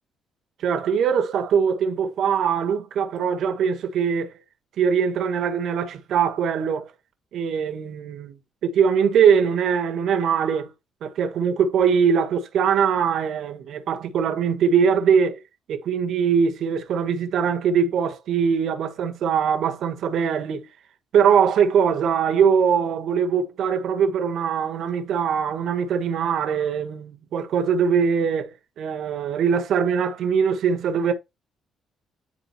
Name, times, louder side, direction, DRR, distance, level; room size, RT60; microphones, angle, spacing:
voice 1, 0.6-4.3 4.8-6.9 7.3-8.3 8.6-10.7 11.0-15.4 15.7-20.7 21.1-28.5 28.8-31.1, right 7 dB, 65° right, 1.4 m, -22 dB
9.8 x 3.9 x 4.2 m
cardioid pair, 120°, 0 cm